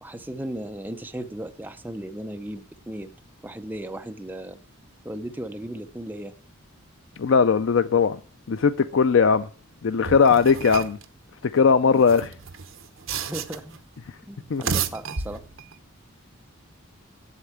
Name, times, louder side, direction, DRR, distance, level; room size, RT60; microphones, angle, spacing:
voice 1, 0.0-3.1 3.4-4.6 5.0-6.3 11.9-12.1 13.1-13.8 14.3-15.4, right 1 dB, 10° right, 0.6 m, -36 dB
voice 2, 7.2-8.2 8.5-9.5 9.8-11.0 11.5-12.3 14.5-14.6, left 5 dB, 60° left, 0.4 m, -19 dB
sound 1, 10.0-11.0 11.9-13.8 14.4-15.7, right 6 dB, 65° right, 1.0 m, -32 dB
8.1 x 7.6 x 8.6 m
head